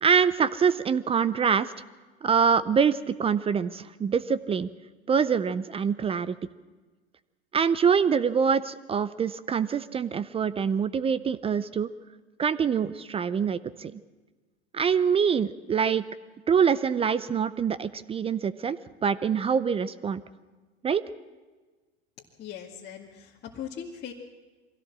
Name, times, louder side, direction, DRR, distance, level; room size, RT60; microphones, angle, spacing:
voice 1, 0.0-1.7 2.2-4.7 5.1-6.4 7.5-11.9 12.4-14.0 14.7-16.0 16.5-20.2 20.8-21.0, right 6 dB, 20° right, 16 dB, 0.5 m, -25 dB
voice 2, 22.4-24.1, left 8 dB, 30° left, -2 dB, 2.1 m, -39 dB
23.5 x 16.5 x 7.5 m, 1.3 s
hypercardioid pair, 100°, 32 cm